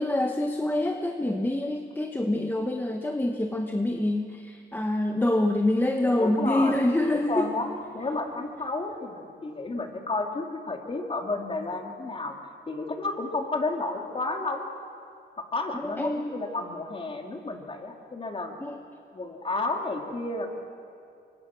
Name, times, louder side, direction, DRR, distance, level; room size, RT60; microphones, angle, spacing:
voice 1, 0.0-7.5 15.7-16.3 18.6-18.8, left 1 dB, 10° left, 4 dB, 1.3 m, -26 dB
voice 2, 6.2-6.8 7.1-12.4 12.7-14.7 15.4-18.5 19.1-20.5, left 3 dB, 30° left, 2 dB, 3.5 m, -31 dB
24.5 x 24.5 x 6.4 m, 2.4 s
cardioid pair, 90°, 20 cm